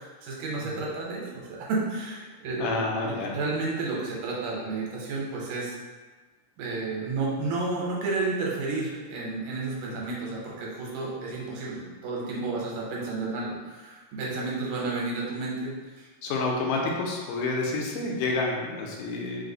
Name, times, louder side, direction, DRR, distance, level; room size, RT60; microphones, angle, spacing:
voice 1, 0.0-5.7 6.6-16.1, right 3 dB, 75° right, -4 dB, 2.2 m, -31 dB
voice 2, 2.6-3.4 16.2-19.4, left 3 dB, 85° left, -1 dB, 2.2 m, -29 dB
5.1 x 2.0 x 3.8 m, 1.3 s
omnidirectional pair, 3.7 m